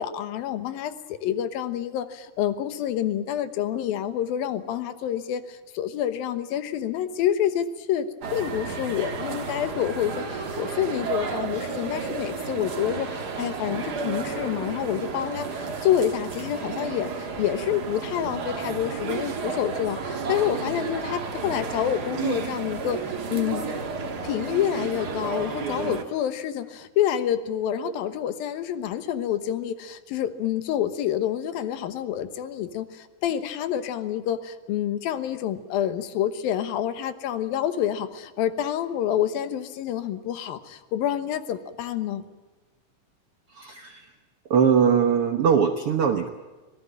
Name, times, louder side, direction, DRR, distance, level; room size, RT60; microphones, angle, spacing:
voice 1, 0.0-5.4 5.7-8.1 8.3-23.0 23.3-23.6 24.2-32.9 33.2-42.2, left 10 dB, 80° left, 12 dB, 3.0 m, -28 dB
sound 1, 8.2-26.0, right 5 dB, 40° right, 1.6 m, -32 dB
voice 2, 43.5-44.1 44.5-46.3, right 7 dB, 70° right, 7 dB, 1.4 m, -21 dB
26.0 x 18.0 x 8.8 m, 1.3 s
omnidirectional pair, 4.2 m